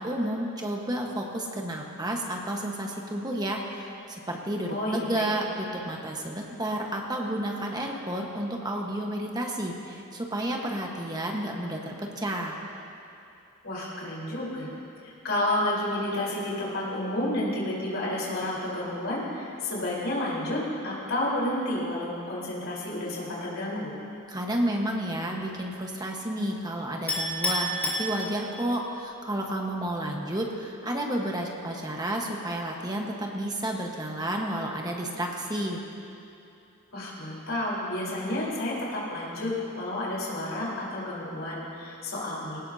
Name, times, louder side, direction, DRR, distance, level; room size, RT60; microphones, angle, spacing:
voice 1, 0.0-12.6 24.3-35.8, right 1 dB, 20° right, 0 dB, 1.3 m, -31 dB
voice 2, 4.7-5.3 13.6-14.7 15.0-23.9 36.9-42.6, left 1 dB, 65° left, -5 dB, 4.1 m, -30 dB
Chink clink, 27.1-28.7, equal, 10° left, 3.6 m, -29 dB
19.5 x 18.0 x 2.8 m, 2.7 s
head